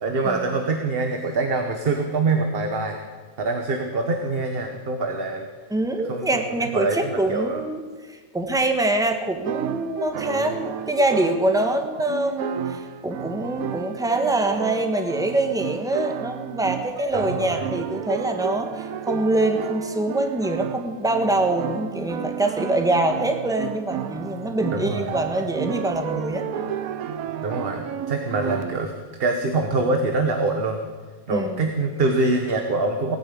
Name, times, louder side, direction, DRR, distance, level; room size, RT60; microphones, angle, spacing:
voice 1, 0.0-3.0 3.4-5.5 6.1-7.6 10.1-10.5 17.1-17.7 24.7-25.1 27.4-30.8 31.3-33.2, right 3 dB, 40° right, 4 dB, 1.2 m, -25 dB
voice 2, 5.7-26.4 31.3-31.6, right 2 dB, 5° right, 5 dB, 1.1 m, -24 dB
sound 1, 9.4-28.9, right 10 dB, 70° right, 1.1 m, -32 dB
18.0 x 9.4 x 8.5 m, 1.4 s
omnidirectional pair, 1.7 m